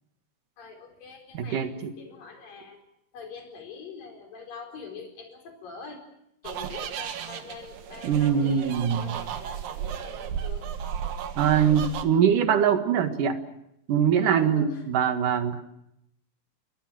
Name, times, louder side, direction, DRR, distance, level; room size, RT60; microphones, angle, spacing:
voice 1, 0.6-2.8 3.1-6.0 6.4-10.7 14.2-14.8, left 5 dB, 80° left, 3 dB, 6.2 m, -44 dB
voice 2, 1.3-1.9 8.0-9.2 11.4-13.4 13.9-15.6, right 8 dB, 70° right, 8 dB, 3.2 m, -23 dB
sound 1, 6.4-12.0, right 8 dB, 85° right, 3.4 m, -34 dB
29.0 x 22.0 x 6.2 m, 0.80 s
omnidirectional pair, 3.9 m